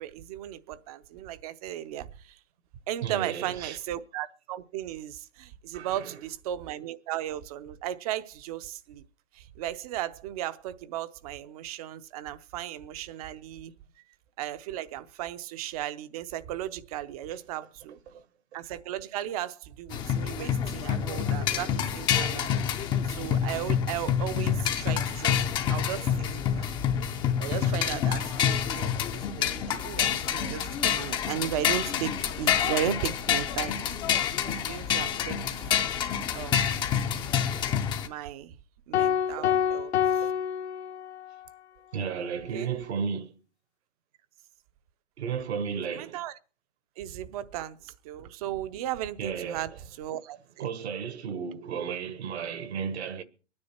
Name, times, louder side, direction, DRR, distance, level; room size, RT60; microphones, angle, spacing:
voice 1, 0.0-2.4 2.9-9.0 9.3-13.7 14.4-18.0 18.5-22.6 23.0-26.7 27.4-29.5 29.8-33.8 34.4-35.4 36.3-36.7 38.0-38.6 38.9-40.2 42.5-42.7 45.9-46.3 47.0-49.7 50.0-50.7, right 12 dB, 30° right, 0.7 m, -36 dB
voice 2, 3.0-3.8 5.7-6.1 18.1-18.2 39.4-39.9 40.2-40.3 41.9-43.4 45.2-46.2 49.2-49.7 50.6-53.2, right 6 dB, 65° right, 1.5 m, -34 dB
sound 1, 19.9-38.1, left 8 dB, 15° left, 0.6 m, -28 dB
sound 2, 38.9-41.4, left 9 dB, 65° left, 1.1 m, -27 dB
22.5 x 9.7 x 4.4 m
hypercardioid pair, 150°, 35 cm